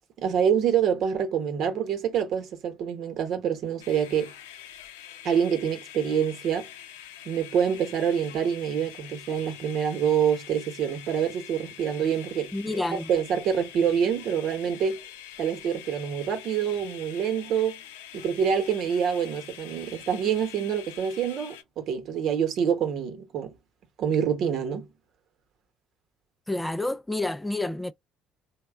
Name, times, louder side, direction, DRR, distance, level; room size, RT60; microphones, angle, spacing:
voice 1, 0.2-4.3 5.2-6.7 7.2-12.5 12.9-15.0 15.4-17.8 18.1-23.5 24.0-24.9, right 8 dB, 60° right, 1.0 m, -26 dB
sound 1, 3.8-21.6, left 11 dB, 80° left, 0.6 m, -45 dB
voice 2, 12.5-13.1 26.5-27.9, left 2 dB, 10° left, 0.3 m, -29 dB
3.0 x 2.2 x 3.3 m
hypercardioid pair, 60°, 0 cm